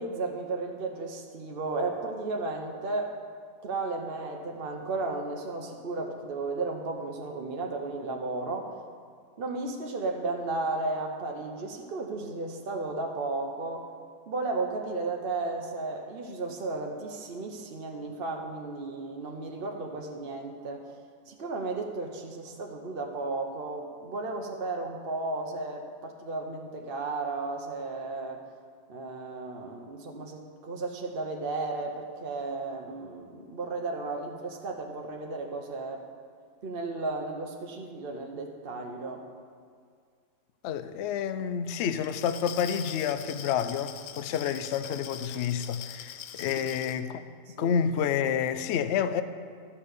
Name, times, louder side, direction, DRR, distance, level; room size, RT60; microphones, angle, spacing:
voice 1, 0.0-3.1 3.6-8.7 9.4-13.9 14.3-20.9 21.3-28.4 28.9-36.1 36.6-39.2 47.5-47.7, right 3 dB, 45° right, 2 dB, 0.8 m, -34 dB
voice 2, 40.6-47.2 47.6-49.2, left 8 dB, 85° left, 11 dB, 0.6 m, -29 dB
Glass, 42.0-47.0, left 9 dB, 70° left, 0.9 m, -42 dB
12.5 x 5.7 x 8.2 m, 2.2 s
omnidirectional pair, 1.8 m